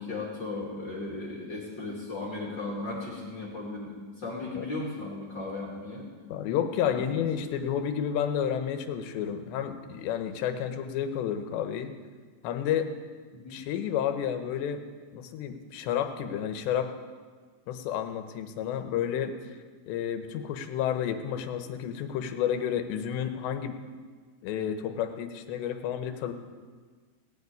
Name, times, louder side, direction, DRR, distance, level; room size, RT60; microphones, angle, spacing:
voice 1, 0.0-6.1 6.8-7.0 13.3-13.6, left 2 dB, 40° left, -4 dB, 1.8 m, -36 dB
voice 2, 6.3-11.9 12.4-12.9 13.5-14.8 15.1-16.9 17.7-19.3 19.9-23.8 24.4-26.3, left 9 dB, 75° left, 7 dB, 2.9 m, -31 dB
17.5 x 8.0 x 9.4 m, 1.5 s
omnidirectional pair, 5.6 m